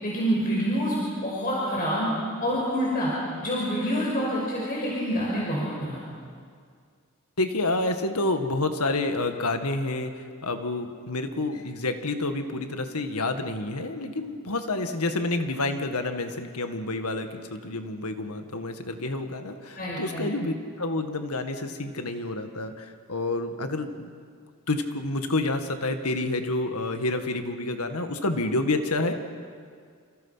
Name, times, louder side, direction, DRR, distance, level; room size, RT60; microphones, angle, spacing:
voice 1, 0.0-2.1 2.4-6.0 19.8-20.3, equal, 40° left, -5 dB, 5.5 m, -27 dB
voice 2, 7.4-24.1 24.7-29.1, left 2 dB, 80° left, 7 dB, 1.9 m, -29 dB
28.5 x 27.5 x 5.8 m, 2.1 s
head